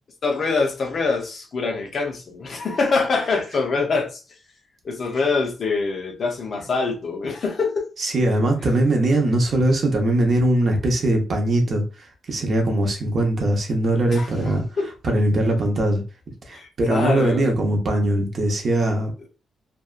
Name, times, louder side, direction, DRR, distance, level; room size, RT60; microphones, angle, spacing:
voice 1, 0.2-4.2 4.8-7.9 14.1-14.9 16.5-17.5, left 4 dB, 40° left, 0.4 m, -24 dB
voice 2, 8.0-14.6 15.0-16.0 16.5-19.1, right 1 dB, 40° right, 0.6 m, -21 dB
2.7 x 2.2 x 2.3 m
wide cardioid pair, 170°, 0 cm